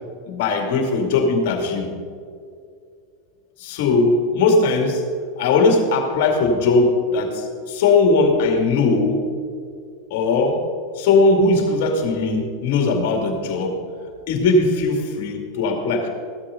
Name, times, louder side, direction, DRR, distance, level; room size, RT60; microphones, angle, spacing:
voice 1, 0.3-1.9 3.6-5.0 5.4-9.3 10.1-10.6 11.0-13.8 14.3-16.1, left 3 dB, 60° left, 3 dB, 2.5 m, -19 dB
16.0 x 13.0 x 3.9 m, 2.3 s
hypercardioid pair, 90°, 0 cm